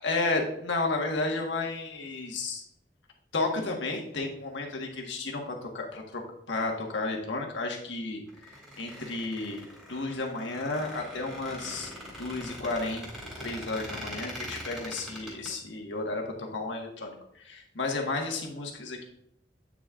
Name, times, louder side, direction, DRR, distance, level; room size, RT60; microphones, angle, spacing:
voice 1, 0.0-2.6 3.3-6.2 6.5-8.2 8.8-11.9 12.2-13.1 13.4-19.0, left 3 dB, 80° left, 1 dB, 1.4 m, -32 dB
Squeak, 8.3-15.5, equal, ahead, 2.5 m, -42 dB
8.8 x 6.2 x 2.4 m, 0.73 s
head